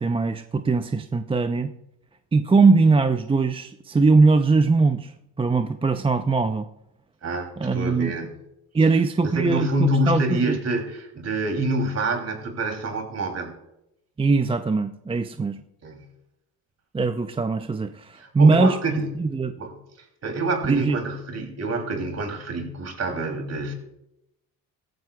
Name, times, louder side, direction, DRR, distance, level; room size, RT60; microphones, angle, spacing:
voice 1, 0.0-1.7 2.3-5.1 5.4-6.7 7.6-8.1 8.7-10.6 14.2-15.6 16.9-18.8 19.2-19.5 20.6-21.0, right 4 dB, 15° right, 9 dB, 0.5 m, -21 dB
voice 2, 7.2-8.3 9.2-13.5 15.8-16.0 18.2-19.1 19.6-19.7 20.2-23.7, right 1 dB, 45° right, 4 dB, 2.9 m, -27 dB
17.0 x 14.0 x 2.3 m, 0.84 s
supercardioid pair, 80°, 36 cm